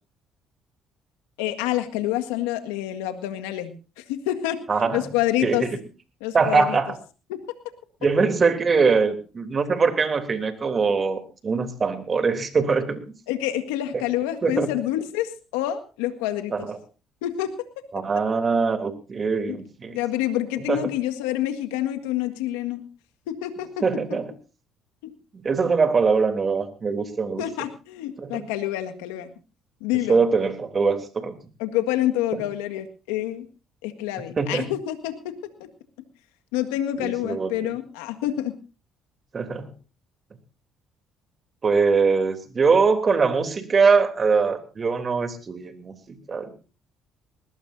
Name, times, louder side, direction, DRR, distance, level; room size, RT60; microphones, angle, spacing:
voice 1, 1.4-4.6 4.9-5.6 6.2-6.8 7.3-7.4 13.3-16.7 17.2-17.5 19.5-19.6 19.9-22.8 23.3-23.7 25.0-25.1 27.4-29.3 29.8-30.2 31.6-33.4 33.8-35.4 36.5-38.5, left 13 dB, 85° left, 7 dB, 1.7 m, -27 dB
voice 2, 4.7-5.0 5.4-5.7 6.3-7.0 8.0-13.0 14.4-14.7 16.5-16.8 17.9-20.0 20.7-20.9 23.8-24.2 25.3-27.4 28.2-28.5 30.1-31.3 32.3-32.4 34.4-34.7 37.0-37.5 39.3-39.7 41.6-46.5, right 4 dB, 40° right, 9 dB, 3.2 m, -22 dB
20.5 x 18.5 x 2.7 m, 0.33 s
supercardioid pair, 65°, 0 cm